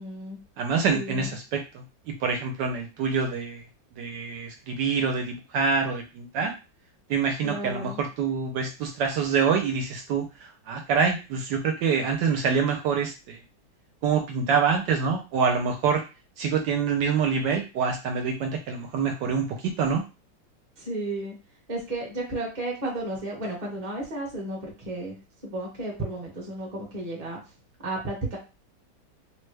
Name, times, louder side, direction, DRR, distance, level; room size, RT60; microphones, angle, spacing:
voice 1, 0.0-0.4 0.9-1.4 7.4-8.0 20.8-21.3 21.7-25.1 25.4-27.4 27.8-28.4, right 2 dB, 25° right, -1 dB, 0.8 m, -33 dB
voice 2, 0.6-3.6 4.0-6.5 7.1-13.4 14.0-16.0 16.4-20.0, right 5 dB, 75° right, 3 dB, 1.1 m, -26 dB
3.2 x 2.2 x 3.2 m, 0.30 s
omnidirectional pair, 2.1 m